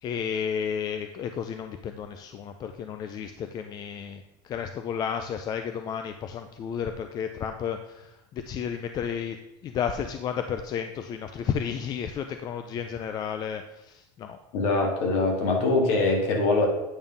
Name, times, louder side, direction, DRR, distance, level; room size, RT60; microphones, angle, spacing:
voice 1, 0.0-9.4 9.6-14.4, left 7 dB, 35° left, 7 dB, 0.5 m, -32 dB
voice 2, 14.5-16.7, left 3 dB, 65° left, 1 dB, 2.1 m, -23 dB
8.9 x 3.6 x 5.4 m, 0.95 s
supercardioid pair, 125°, 12 cm